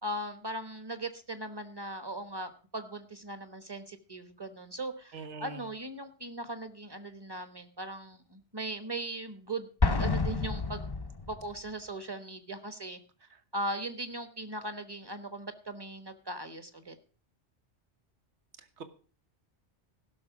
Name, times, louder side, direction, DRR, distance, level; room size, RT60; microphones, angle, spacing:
voice 1, 0.0-9.7 10.0-10.8 11.3-13.0 13.5-17.0, right 1 dB, 20° right, 9 dB, 1.1 m, -39 dB
voice 2, 5.1-5.6 18.8-18.9, right 4 dB, 75° right, 10 dB, 1.5 m, -42 dB
Explosion, 9.8-11.6, left 3 dB, 25° left, 0.6 m, -29 dB
16.0 x 6.4 x 6.0 m, 0.39 s
omnidirectional pair, 1.2 m